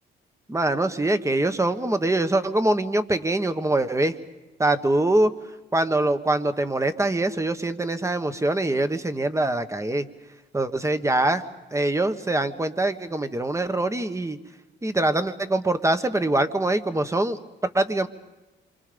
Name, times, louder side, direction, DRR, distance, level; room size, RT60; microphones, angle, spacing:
voice 1, 0.5-4.1 4.6-5.3 5.7-10.1 10.5-11.4 11.7-14.4 14.8-18.1, right 2 dB, 15° right, 9 dB, 1.4 m, -23 dB
28.0 x 25.0 x 5.3 m, 1.1 s
cardioid pair, 90°, 20 cm